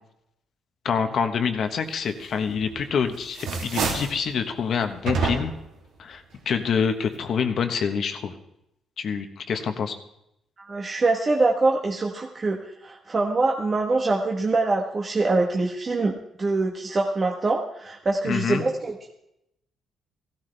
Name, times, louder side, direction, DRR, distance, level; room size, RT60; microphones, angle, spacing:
voice 1, 0.8-5.5 6.0-8.4 9.0-9.9 18.2-18.6, left 6 dB, 60° left, 7 dB, 1.2 m, -26 dB
sound 1, 2.5-2.9 3.2-4.2 5.1-5.7, right 4 dB, 85° right, 2.6 m, -28 dB
voice 2, 10.6-12.6 12.8-16.1 16.4-19.1, right 3 dB, 35° right, 0 dB, 1.2 m, -24 dB
15.5 x 13.5 x 3.4 m, 0.81 s
cardioid pair, 90°, 0 cm